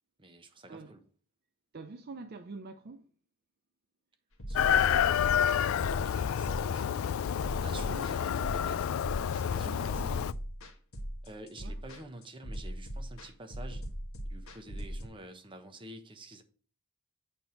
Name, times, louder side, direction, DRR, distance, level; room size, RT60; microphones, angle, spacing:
voice 1, 0.2-1.0 4.5-7.2 7.6-9.0 9.3-10.3 11.2-13.9 14.3-16.4, right 1 dB, 25° right, 1.1 m, -49 dB
voice 2, 1.7-3.1 7.8-8.3 9.5-10.3 11.6-11.7, right 3 dB, 50° right, 0.5 m, -46 dB
sound 1, 4.4-15.1, equal, 90° left, 1.6 m, -40 dB
Chicken rooster, 4.5-10.3, left 8 dB, 75° left, 0.3 m, -29 dB
8.5 x 3.5 x 6.2 m
head